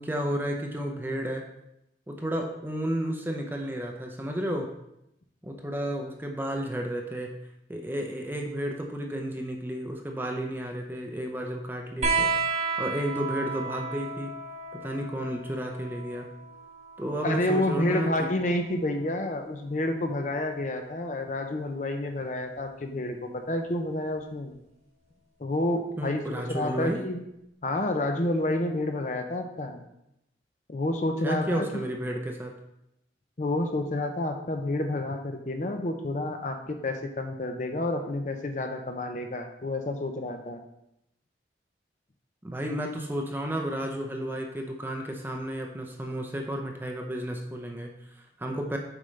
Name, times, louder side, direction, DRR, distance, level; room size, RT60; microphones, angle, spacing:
voice 1, 0.0-1.5 2.1-4.7 5.4-7.3 7.7-14.4 14.7-16.3 17.0-18.3 26.0-27.0 31.2-32.5 42.4-48.8, equal, 10° right, 2 dB, 0.6 m, -32 dB
sound 1, 12.0-19.1 20.5-21.3 22.6-22.7, right 4 dB, 40° right, 1.1 m, -33 dB
voice 2, 17.2-24.5 25.4-27.2 27.6-29.8 30.7-31.7 33.4-40.6, left 1 dB, 40° left, 5 dB, 0.6 m, -29 dB
7.2 x 5.3 x 3.2 m, 0.83 s
head